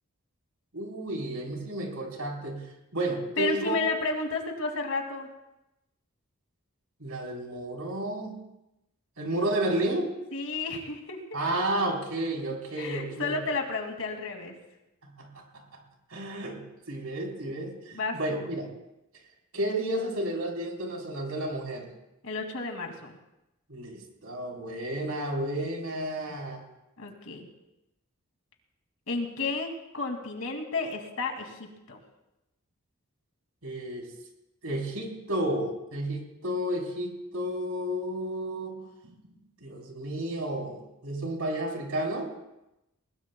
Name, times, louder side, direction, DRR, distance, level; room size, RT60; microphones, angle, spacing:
voice 1, 0.7-2.6 2.9-3.8 7.0-8.4 9.2-10.1 11.3-13.4 15.0-15.4 16.1-16.6 16.9-18.7 19.5-21.9 23.7-26.6 33.6-34.1 34.6-39.1 39.6-42.3, right 1 dB, 80° right, -1 dB, 4.0 m, -32 dB
voice 2, 3.4-5.3 10.3-11.6 12.8-14.5 17.9-18.5 22.2-23.1 27.0-27.5 29.1-32.0, left 3 dB, 70° left, 3 dB, 2.5 m, -32 dB
21.0 x 21.0 x 2.3 m, 0.91 s
head